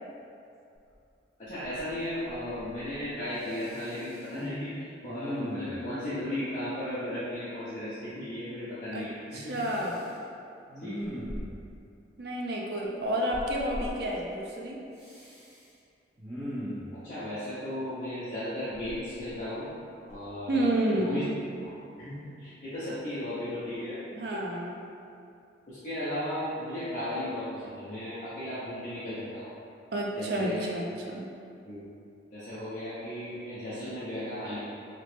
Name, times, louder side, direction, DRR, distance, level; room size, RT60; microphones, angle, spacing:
Respiratory sounds, 0.9-1.0 1.5-2.0 2.3-3.0 3.4-4.4 5.1-5.9 9.5-10.1 10.7-11.7 13.3-13.9 15.0-15.7 16.2-16.9 18.7-19.7 20.1-20.3, equal, 35° right, 1.4 m, -39 dB
voice 1, 1.4-9.5 10.8-11.0 17.0-19.7 20.1-21.2 21.6-24.0 25.7-29.5 30.2-30.7 31.6-31.8 32.3-34.6, left 1 dB, 45° left, -13 dB, 0.6 m, -35 dB
voice 2, 9.3-10.1 12.2-14.8 20.5-21.3 24.1-24.8 29.9-31.3, right 1 dB, 55° right, -2 dB, 0.4 m, -30 dB
3.1 x 2.9 x 3.2 m, 2.6 s
head